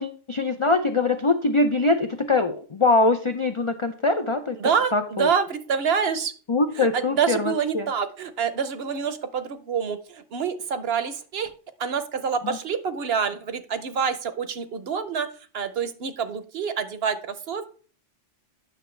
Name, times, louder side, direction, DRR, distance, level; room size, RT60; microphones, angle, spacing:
voice 1, 0.0-4.6 4.9-5.3 6.5-7.9 12.4-12.6, left 3 dB, 55° left, 7 dB, 0.3 m, -23 dB
voice 2, 4.6-6.3 6.8-11.5 11.8-15.3 15.5-17.7, right 6 dB, 55° right, 11 dB, 0.9 m, -27 dB
9.7 x 6.5 x 3.2 m, 0.41 s
omnidirectional pair, 1.3 m